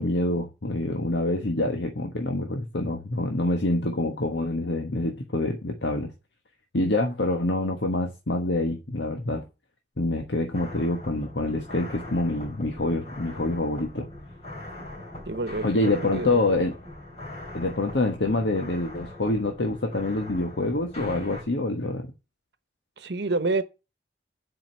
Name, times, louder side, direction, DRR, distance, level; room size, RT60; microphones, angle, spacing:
voice 1, 0.0-6.1 6.7-9.4 10.0-14.1 15.6-16.8 17.5-22.1, left 2 dB, 80° left, 1.2 m, -26 dB
sound 1, 10.5-21.4, left 1 dB, 35° left, 3.7 m, -41 dB
voice 2, 15.3-16.7 23.0-23.6, right 3 dB, 70° right, 1.0 m, -29 dB
7.7 x 5.1 x 7.3 m
head